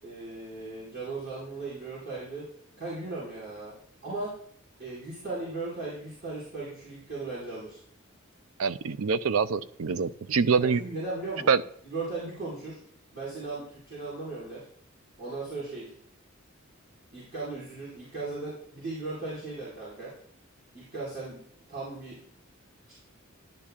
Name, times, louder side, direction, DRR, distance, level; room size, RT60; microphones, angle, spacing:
voice 1, 0.0-2.4 2.8-3.7 4.0-4.3 4.8-7.8 10.6-11.5 11.8-12.8 13.1-14.6 15.2-15.8 17.1-20.1 20.7-21.4 21.7-22.2 22.9-23.0, right 3 dB, 50° right, -8 dB, 4.9 m, -37 dB
voice 2, 8.6-10.8 11.5-11.6, right 5 dB, 80° right, 13 dB, 0.5 m, -25 dB
12.0 x 10.0 x 2.4 m, 0.63 s
head